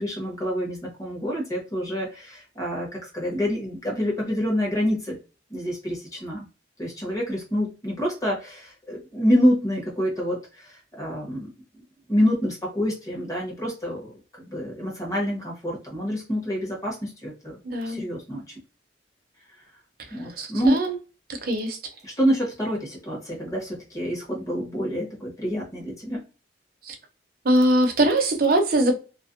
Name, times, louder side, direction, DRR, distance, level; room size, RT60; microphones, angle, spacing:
voice 1, 0.0-5.2 5.5-6.5 6.8-11.5 12.1-14.1 14.4-17.6 17.8-18.6 20.1-20.8 22.0-26.2, equal, 20° left, 1.0 m, -27 dB
voice 2, 17.6-18.0 20.4-20.9 21.4-21.8 26.9-27.0 27.4-28.9, right 1 dB, 50° right, 0.6 m, -21 dB
2.4 x 2.0 x 2.4 m
head